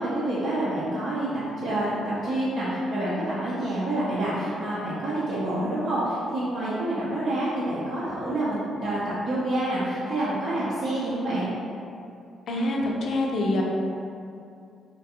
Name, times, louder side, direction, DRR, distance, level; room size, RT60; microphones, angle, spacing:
voice 1, 0.0-11.5, right 1 dB, 70° right, -11 dB, 0.6 m, -27 dB
voice 2, 12.5-13.6, left 1 dB, 60° left, -1 dB, 0.4 m, -25 dB
2.5 x 2.2 x 2.8 m, 2.5 s
cardioid pair, 90°, 0 cm